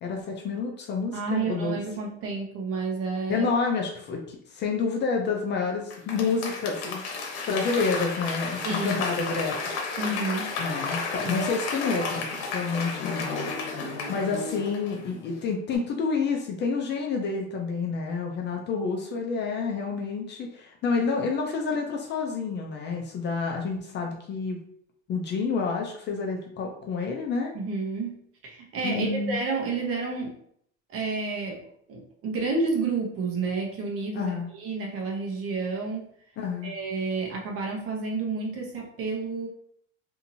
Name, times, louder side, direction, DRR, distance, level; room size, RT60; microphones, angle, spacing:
voice 1, 0.0-1.8 3.3-7.0 7.5-9.6 10.6-12.3 12.5-13.3 14.1-24.6 25.1-27.5 28.8-29.4 34.1-34.5 36.4-36.7, left 4 dB, 35° left, 1 dB, 0.4 m, -29 dB
voice 2, 1.1-3.5 8.6-9.0 10.0-10.6 11.2-11.5 27.5-30.4 30.9-31.6 31.9-36.1 36.6-39.5, right 4 dB, 40° right, -1 dB, 0.9 m, -30 dB
Applause / Crowd, 5.9-15.3 15.7-15.8, left 4 dB, 75° left, 0.9 m, -32 dB
2.8 x 2.7 x 2.6 m, 0.67 s
supercardioid pair, 125°, 34 cm